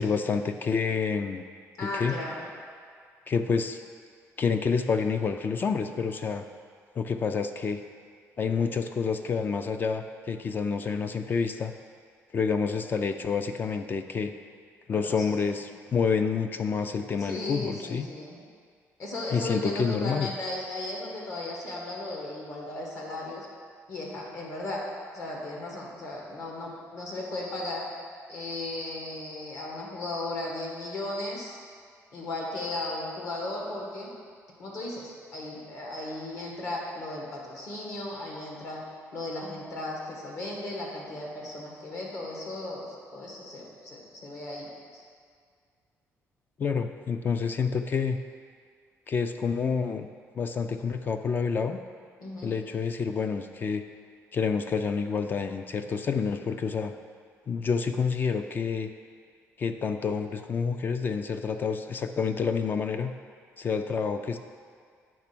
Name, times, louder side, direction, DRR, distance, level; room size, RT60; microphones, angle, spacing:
voice 1, 0.0-1.4 1.8-2.2 3.3-3.8 4.4-6.4 7.0-7.8 8.4-11.7 12.3-14.3 14.9-18.1 19.3-20.3 46.6-48.2 49.1-50.1 50.4-51.8 52.4-53.8 54.3-56.9 57.5-58.9 59.6-63.1 63.6-64.4, left 5 dB, 35° left, 7 dB, 0.3 m, -28 dB
voice 2, 1.8-2.5 14.9-15.0 15.3-15.4 17.2-18.4 19.0-23.5 23.9-24.8 25.1-27.8 28.3-31.6 32.1-34.1 34.6-38.8 39.1-45.0 52.2-52.5, left 2 dB, 60° left, -2 dB, 1.7 m, -36 dB
8.7 x 3.3 x 6.0 m, 2.1 s
cardioid pair, 120°, 6 cm